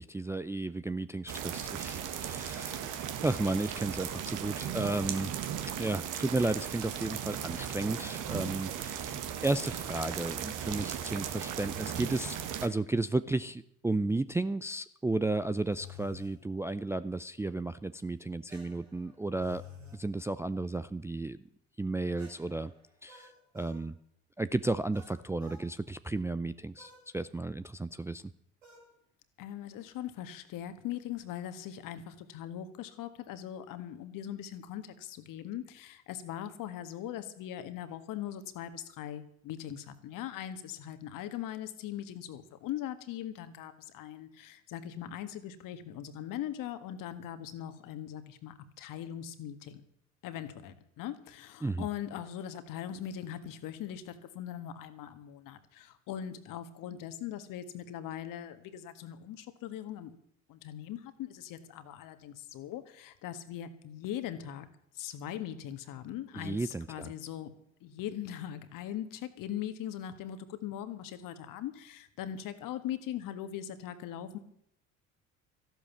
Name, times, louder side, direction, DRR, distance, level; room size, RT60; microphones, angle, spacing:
voice 1, 0.0-5.3 5.7-9.1 9.4-12.4 12.6-19.6 19.9-21.4 21.8-22.7 23.0-24.0 24.4-28.2 51.6-51.9 66.3-67.1, right 2 dB, 5° right, 12 dB, 0.5 m, -33 dB
sound 1, 1.3-12.7, right 9 dB, 55° right, 1.6 m, -37 dB
sound 2, 15.7-16.3 18.5-20.0 22.2-23.8 24.9-25.7 26.8-27.1 28.6-28.9, left 5 dB, 90° right, 4.8 m, -52 dB
voice 2, 29.4-49.8 50.2-60.1 60.5-64.7 65.0-67.5 67.8-74.4, left 11 dB, 55° left, 10 dB, 1.7 m, -40 dB
13.5 x 12.0 x 7.2 m, 0.73 s
hypercardioid pair, 60°, 38 cm